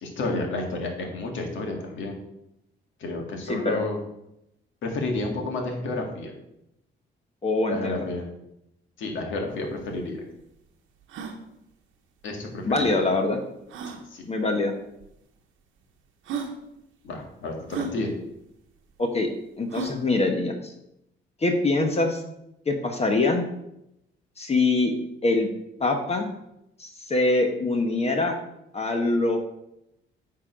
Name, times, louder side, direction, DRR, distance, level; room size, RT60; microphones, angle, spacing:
voice 1, 0.0-2.2 3.0-4.0 4.8-6.3 7.7-8.3 9.0-10.2 12.2-13.1 13.9-14.3 17.0-18.1, left 2 dB, 75° left, 2 dB, 1.8 m, -31 dB
voice 2, 3.5-3.8 7.4-8.0 12.6-13.4 14.3-14.7 19.0-19.3 19.6-20.7 21.4-22.2 22.7-23.4 24.4-24.9 25.2-25.5 25.8-26.3 26.8-28.3 28.7-29.4, left 2 dB, 30° left, 4 dB, 1.0 m, -24 dB
sound 1, 9.5-9.6 9.8-9.9 10.4-10.5 11.0-11.4 12.7-12.8 13.7-14.0 15.0-15.1 15.8-15.9 16.2-16.6 17.7-17.9 19.7-20.0, right 4 dB, 80° right, 1.0 m, -33 dB
8.6 x 3.8 x 5.1 m, 0.83 s
cardioid pair, 90°, 20 cm